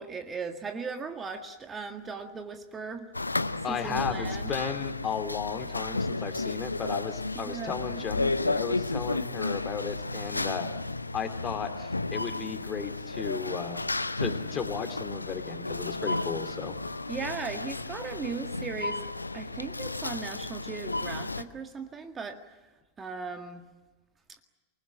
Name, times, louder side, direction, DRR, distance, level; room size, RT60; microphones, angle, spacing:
voice 1, 0.0-3.1 3.7-4.5 7.3-7.8 17.1-19.1 19.3-22.6 23.0-23.7, right 4 dB, 20° right, 6 dB, 1.8 m, -37 dB
sound 1, 3.1-21.4, left 2 dB, 80° left, 0.8 m, -33 dB
voice 2, 3.6-10.7 11.1-13.8 14.2-16.8, left 6 dB, 25° left, 7 dB, 2.8 m, -35 dB
28.0 x 20.5 x 8.7 m, 1.2 s
figure-of-eight pair, 90°, 0 cm